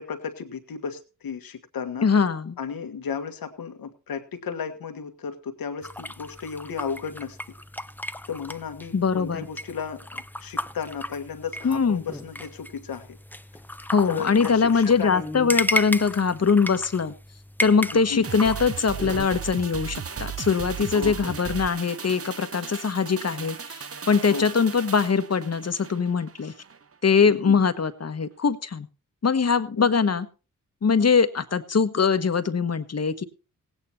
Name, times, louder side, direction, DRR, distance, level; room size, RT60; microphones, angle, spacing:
voice 1, 0.0-2.1 2.6-7.4 8.3-13.2 14.1-15.3 17.9-18.3 20.9-21.3 24.3-24.5 27.2-27.6 29.7-29.9, left 6 dB, 85° left, 8 dB, 1.6 m, -34 dB
voice 2, 2.0-2.6 8.9-9.4 11.6-12.0 13.9-17.1 17.6-26.5 27.0-28.9 29.2-30.3 30.8-33.2, left 5 dB, 45° left, 11 dB, 1.2 m, -22 dB
sound 1, 5.8-19.3, left 1 dB, 5° left, 0.7 m, -34 dB
sound 2, 18.2-26.8 27.1-27.2, right 7 dB, 40° right, 0.9 m, -36 dB
17.0 x 9.1 x 4.3 m, 0.33 s
cardioid pair, 60°, 35 cm